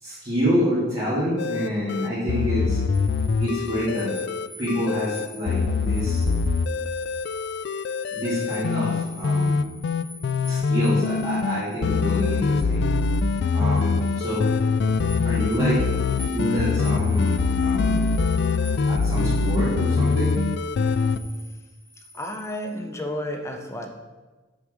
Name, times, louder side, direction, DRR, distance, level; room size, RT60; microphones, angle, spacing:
voice 1, 0.0-2.8 3.4-4.1 4.6-6.2 8.1-9.6 10.4-12.9 13.5-14.5 15.2-15.9 16.2-18.0 18.9-20.4, equal, 30° right, -11 dB, 2.4 m, -27 dB
sound 1, 1.4-21.2, left 4 dB, 60° left, 0.3 m, -24 dB
sound 2, 2.9-22.8, left 1 dB, 75° right, 2.2 m, -46 dB
voice 2, 22.1-23.9, left 1 dB, 15° left, 3 dB, 0.8 m, -31 dB
6.7 x 4.8 x 6.5 m, 1.2 s
head